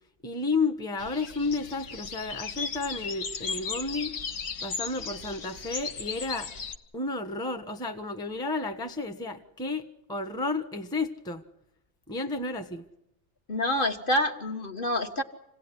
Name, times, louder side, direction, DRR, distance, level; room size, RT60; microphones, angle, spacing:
voice 1, 0.2-4.1 4.6-6.5 6.9-11.4 12.1-12.8, left 3 dB, 5° left, 6 dB, 1.1 m, -32 dB
sound 1, 1.0-6.7, left 5 dB, 60° left, 1.5 m, -36 dB
voice 2, 13.5-15.2, left 1 dB, 40° left, 3 dB, 1.6 m, -27 dB
27.5 x 17.5 x 9.8 m, 0.86 s
omnidirectional pair, 1.5 m